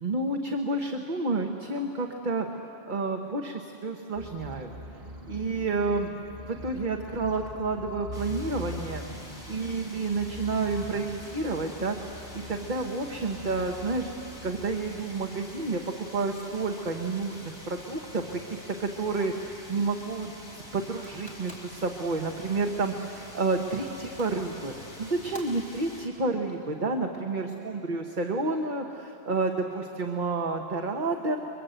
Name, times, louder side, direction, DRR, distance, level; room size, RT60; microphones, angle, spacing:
voice 1, 0.0-2.5 2.9-4.7 5.3-6.1 6.5-9.0 9.5-12.0 12.3-14.1 14.4-24.7 25.0-31.4, right 3 dB, 50° right, 3 dB, 1.4 m, -30 dB
sound 1, 4.1-15.0, left 1 dB, 70° right, 1.9 m, -43 dB
sound 2, 8.1-26.1, left 1 dB, 45° left, 4.3 m, -47 dB
sound 3, 21.0-27.2, left 1 dB, 5° left, 3.4 m, -52 dB
29.5 x 23.5 x 8.0 m, 2.9 s
omnidirectional pair, 1.1 m